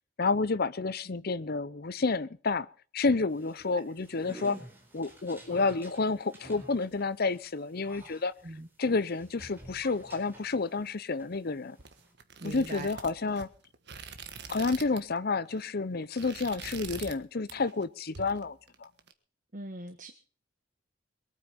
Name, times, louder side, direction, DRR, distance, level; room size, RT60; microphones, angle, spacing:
voice 1, 0.2-2.7 2.9-4.6 4.9-8.3 8.8-11.8 12.4-13.5 14.5-18.9, left 3 dB, 50° left, 16 dB, 0.7 m, -30 dB
sound 1, 3.3-10.9 11.2-12.1, right 1 dB, 10° right, 4.4 m, -50 dB
sound 2, 11.8-15.2 15.4-15.7 16.0-17.2 17.5-17.8 18.1-19.1, right 5 dB, 60° right, 1.5 m, -45 dB
voice 2, 12.4-12.9 19.5-20.1, right 2 dB, 40° right, 7 dB, 1.2 m, -41 dB
22.5 x 9.1 x 5.8 m, 0.41 s
head